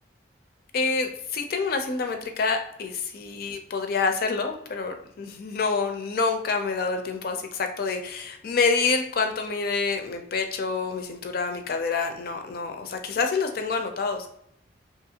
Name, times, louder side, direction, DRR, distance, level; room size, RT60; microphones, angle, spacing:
voice 1, 0.7-14.3, left 4 dB, 50° left, 6 dB, 0.4 m, -27 dB
2.8 x 2.4 x 2.7 m, 0.73 s
head